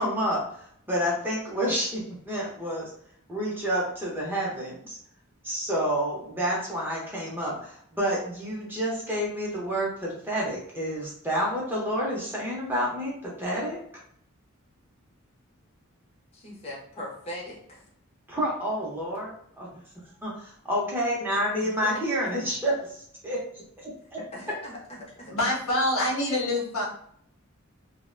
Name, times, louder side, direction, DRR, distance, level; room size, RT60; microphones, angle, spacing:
voice 1, 0.0-2.9 3.3-5.0 5.4-13.8 18.3-19.7 20.2-24.2, equal, 10° right, -5 dB, 0.6 m, -29 dB
voice 2, 16.3-17.8 21.6-22.0 24.1-25.3, left 1 dB, 30° left, -2 dB, 0.6 m, -40 dB
voice 3, 25.3-26.8, left 1 dB, 70° left, -2 dB, 0.7 m, -25 dB
2.4 x 2.1 x 2.5 m, 0.65 s
head